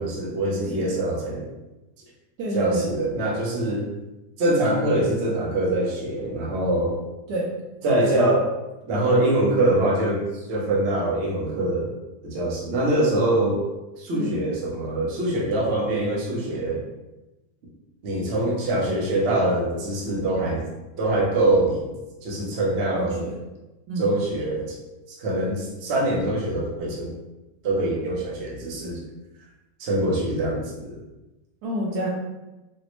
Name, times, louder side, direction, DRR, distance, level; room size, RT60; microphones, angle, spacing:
voice 1, 0.0-1.4 2.5-3.8 4.4-7.0 7.8-8.5 8.9-11.9 12.2-13.6 14.0-16.8 18.0-20.6 21.0-21.9 22.2-23.2 24.0-24.8 25.2-27.1 27.6-29.0 29.8-31.0, right 1 dB, 50° right, -3 dB, 0.8 m, -24 dB
voice 2, 2.4-2.9 7.3-7.5 14.1-14.3 22.9-23.4 23.9-24.1 31.6-32.1, right 1 dB, 70° right, -3 dB, 1.1 m, -28 dB
4.1 x 2.0 x 2.9 m, 1.0 s
omnidirectional pair, 1.9 m